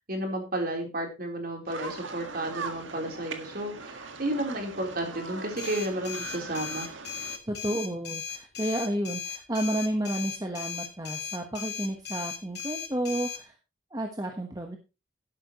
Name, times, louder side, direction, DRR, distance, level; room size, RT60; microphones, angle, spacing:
voice 1, 0.1-6.9, right 1 dB, 50° right, 2 dB, 3.7 m, -32 dB
sound 1, 1.7-7.4, right 4 dB, 80° right, 1.7 m, -40 dB
sound 2, 5.6-13.4, left 7 dB, 55° left, 2.7 m, -37 dB
voice 2, 7.5-13.5 13.9-14.8, right 1 dB, 20° right, 3 dB, 1.2 m, -31 dB
12.0 x 11.5 x 3.0 m, 0.29 s
head